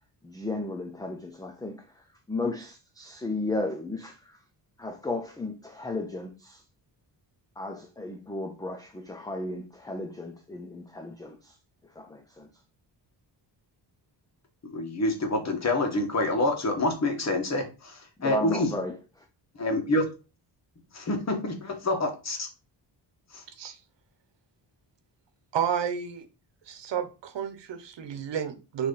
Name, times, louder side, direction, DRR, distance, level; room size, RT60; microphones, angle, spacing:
voice 1, 0.2-4.4 4.8-6.6 7.6-11.6 11.8-12.5 18.2-19.3, left 2 dB, 10° left, 0.5 m, -34 dB
voice 2, 14.6-18.7 19.6-20.0 20.9-22.5 23.3-23.4, left 2 dB, 40° left, 1.5 m, -27 dB
voice 3, 25.5-26.2 26.7-28.9, right 8 dB, 75° right, 1.1 m, -31 dB
6.2 x 3.2 x 5.5 m
wide cardioid pair, 175°, 43 cm